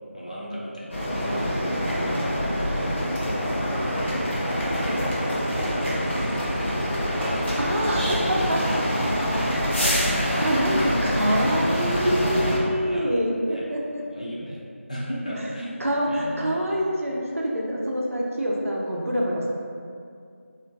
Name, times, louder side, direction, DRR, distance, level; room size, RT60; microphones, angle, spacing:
voice 1, 0.1-4.2 4.8-5.1 5.6-6.4 7.9-8.1 12.9-13.1 13.5-13.7 14.0-16.6, equal, 30° left, -6 dB, 0.4 m, -37 dB
sound 1, 0.9-12.6, equal, 55° left, 0.7 m, -25 dB
voice 2, 7.6-9.3 10.1-13.8 15.8-19.5, equal, 75° right, -3 dB, 0.5 m, -26 dB
2.4 x 2.3 x 2.3 m, 2.3 s
figure-of-eight pair, 170°, 7 cm